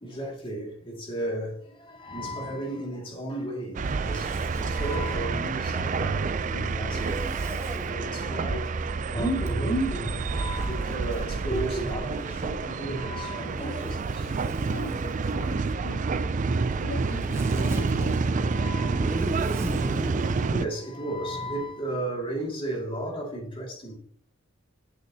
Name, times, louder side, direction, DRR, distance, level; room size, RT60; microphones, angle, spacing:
voice 1, 0.0-14.3 18.5-19.2 20.4-24.0, right 1 dB, 25° left, 2.3 m, -33 dB
sound 1, 3.7-20.6, right 4 dB, 40° right, 0.4 m, -28 dB
Zipper (clothing), 3.8-5.3 6.9-8.0 9.4-12.6 13.4-15.7 16.6-20.6, right 1 dB, 15° right, 0.8 m, -38 dB
voice 2, 14.4-16.3 16.8-18.2, left 5 dB, 60° left, 0.4 m, -42 dB
8.5 x 6.5 x 2.8 m
head